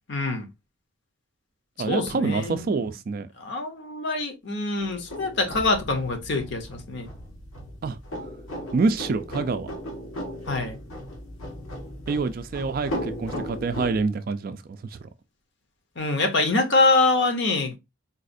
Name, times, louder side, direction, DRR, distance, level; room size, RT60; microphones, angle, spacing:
voice 1, 0.1-0.5 1.8-2.9 3.4-7.1 10.5-10.8 16.0-17.8, left 3 dB, 55° left, 0.8 m, -25 dB
voice 2, 1.8-3.3 7.8-8.0 8.7-9.7 12.1-15.1, right 4 dB, 45° right, 0.3 m, -27 dB
sound 1, 4.8-14.0, equal, 80° left, 1.2 m, -36 dB
4.0 x 2.4 x 2.5 m
head